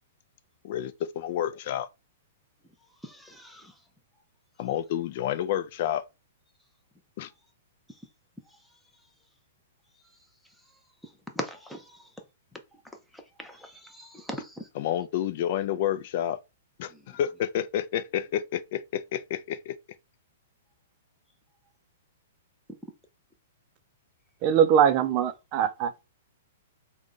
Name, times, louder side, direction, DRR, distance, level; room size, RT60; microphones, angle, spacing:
voice 1, 0.6-1.9 4.6-6.0 7.2-7.3 14.7-16.4 16.8-19.8, left 10 dB, 50° left, 0.3 m, -29 dB
voice 2, 3.0-3.7 11.4-11.8 13.4-14.6, equal, ahead, 0.6 m, -39 dB
voice 3, 24.4-26.0, right 8 dB, 35° right, 0.4 m, -22 dB
3.6 x 2.2 x 3.7 m
hypercardioid pair, 145°, 0 cm